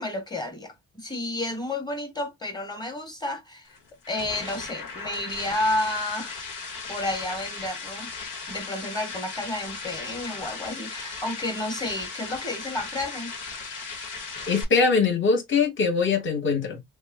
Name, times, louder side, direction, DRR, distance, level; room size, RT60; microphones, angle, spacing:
voice 1, 0.0-3.7 4.1-6.4 6.9-8.1 8.5-13.3, left 1 dB, 15° left, 1.2 m, -31 dB
sound 1, 3.6-14.6, left 4 dB, 85° left, 1.3 m, -37 dB
voice 2, 14.5-16.8, left 5 dB, 40° left, 1.2 m, -22 dB
2.9 x 2.2 x 3.4 m
cardioid pair, 90°, 30 cm